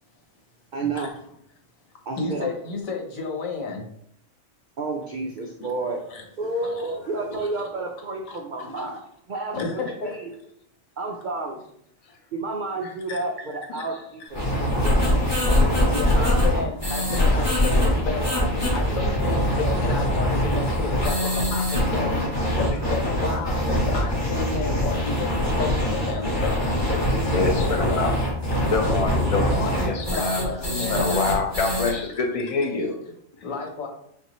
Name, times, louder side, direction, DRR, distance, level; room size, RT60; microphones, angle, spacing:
voice 1, 0.7-1.1 2.1-2.5 4.8-6.0 6.4-10.3 11.0-11.6 12.3-14.5 14.8-15.2 16.1-16.5, right 3 dB, 70° right, 2 dB, 0.4 m, -31 dB
voice 2, 2.2-3.8 5.0-5.1 5.6-6.2 6.6-7.6 8.3-8.9 9.5-10.1 13.1-13.3 13.8-13.9 14.2-14.3 15.8-22.2 22.5-26.6 26.9-28.1 30.0-31.3 33.4-33.9, left 4 dB, 85° left, 2 dB, 1.3 m, -32 dB
sound 1, 14.3-31.9, equal, 20° left, 1.7 m, -23 dB
voice 3, 27.3-28.1 28.6-30.4 30.7-33.0, left 4 dB, 40° left, 3 dB, 0.6 m, -26 dB
6.5 x 2.5 x 3.0 m, 0.71 s
omnidirectional pair, 1.4 m